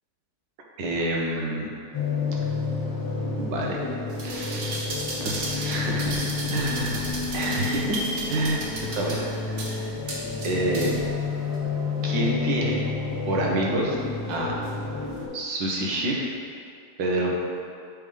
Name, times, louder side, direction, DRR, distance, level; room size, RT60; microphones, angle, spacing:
voice 1, 0.8-1.7 3.4-3.8 4.2-4.8 5.2-8.0 8.3-9.9 10.4-11.0 12.0-12.8 13.3-14.0 14.3-14.6 15.3-16.2 17.0-17.4, right 1 dB, 90° right, -2 dB, 1.6 m, -28 dB
sound 1, 1.9-15.3, left 4 dB, 15° left, 1.1 m, -30 dB
sound 2, 4.1-11.1 11.5-11.6, right 2 dB, 50° right, 1.1 m, -34 dB
6.3 x 3.4 x 5.1 m, 2.4 s
omnidirectional pair, 1.9 m